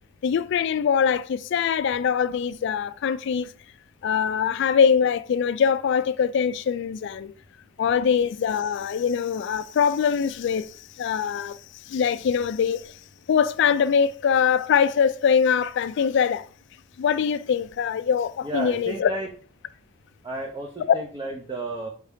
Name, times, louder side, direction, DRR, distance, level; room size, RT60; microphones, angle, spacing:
voice 1, 0.2-3.5 4.0-7.3 7.8-11.6 11.8-13.0 13.3-16.5 17.0-19.1, left 7 dB, 60° left, 0.3 m, -23 dB
voice 2, 18.4-19.3 20.2-21.9, right 2 dB, 20° right, 0.6 m, -32 dB
4.7 x 2.7 x 3.4 m
head